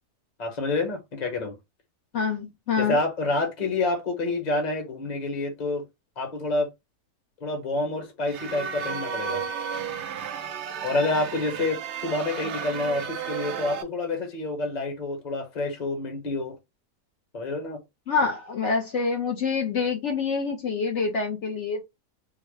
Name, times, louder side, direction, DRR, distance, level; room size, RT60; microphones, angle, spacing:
voice 1, 0.4-1.5 2.8-5.8 6.2-6.7 7.4-9.4 10.8-16.6 17.3-17.8, left 2 dB, 30° left, 0.9 m, -28 dB
voice 2, 2.1-3.0 18.1-21.8, left 5 dB, 60° left, 0.8 m, -26 dB
sound 1, 8.3-13.8, right 7 dB, 75° right, 0.6 m, -33 dB
3.7 x 2.1 x 3.1 m
omnidirectional pair, 1.8 m